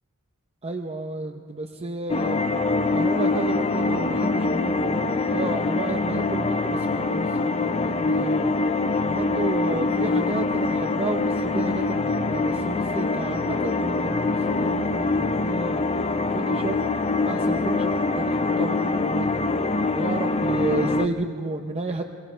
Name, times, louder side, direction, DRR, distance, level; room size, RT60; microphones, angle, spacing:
voice 1, 0.6-2.4 2.9-8.5 9.0-16.8 17.2-19.4 19.9-22.0, right 2 dB, 30° right, 4 dB, 0.8 m, -32 dB
sound 1, 2.1-21.1, left 3 dB, 30° left, 0.6 m, -24 dB
27.5 x 22.5 x 5.6 m, 2.4 s
head